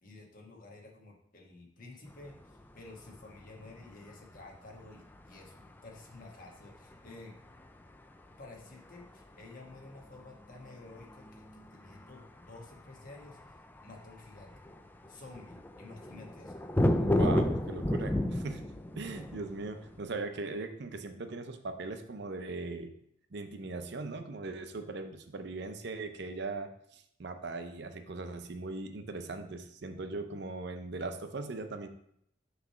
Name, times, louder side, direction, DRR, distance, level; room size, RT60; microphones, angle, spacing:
voice 1, 0.0-7.4 8.4-13.4 13.8-14.5 15.1-16.6, left 2 dB, 45° left, -1 dB, 1.3 m, -51 dB
sound 1, 2.1-20.0, left 1 dB, 10° left, 0.3 m, -34 dB
voice 2, 17.0-18.7 19.0-22.9 23.3-31.9, right 3 dB, 60° right, 8 dB, 0.6 m, -39 dB
6.1 x 3.2 x 5.7 m, 0.72 s
head